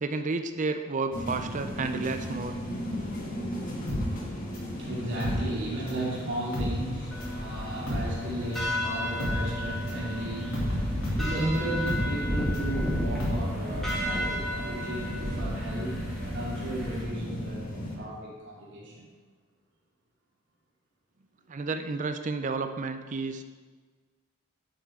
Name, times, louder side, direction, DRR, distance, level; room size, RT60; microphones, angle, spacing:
voice 1, 0.0-2.6 21.5-23.4, right 3 dB, 40° right, 8 dB, 0.5 m, -31 dB
sound 1, 1.1-18.0, equal, 45° left, 1.7 m, -36 dB
voice 2, 3.6-19.1, right 1 dB, 60° right, -6 dB, 2.9 m, -35 dB
sound 2, 3.9-6.1 6.4-14.1 14.4-14.5, equal, 80° left, 2.9 m, -33 dB
sound 3, 7.1-17.0, equal, ahead, 2.4 m, -33 dB
10.0 x 7.2 x 3.7 m, 1.4 s
head